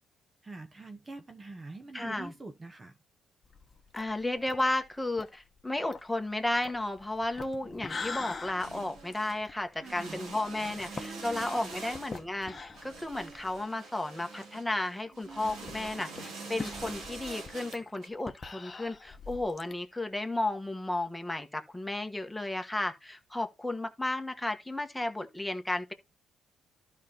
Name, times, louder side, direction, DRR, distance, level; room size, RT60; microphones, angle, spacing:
voice 1, 0.4-3.0 9.8-10.2 11.0-11.8, right 3 dB, 25° right, 0.8 m, -45 dB
voice 2, 1.9-2.3 3.9-25.9, left 2 dB, 5° left, 1.3 m, -33 dB
sound 1, 3.4-13.7 14.0-14.1 14.4-14.5 15.2-19.7, left 4 dB, 30° left, 1.0 m, -44 dB
sound 2, 8.0-8.1 8.5-9.4 9.8-18.1, right 3 dB, 80° right, 3.0 m, -45 dB
12.0 x 5.1 x 2.9 m
cardioid pair, 90°, 0 cm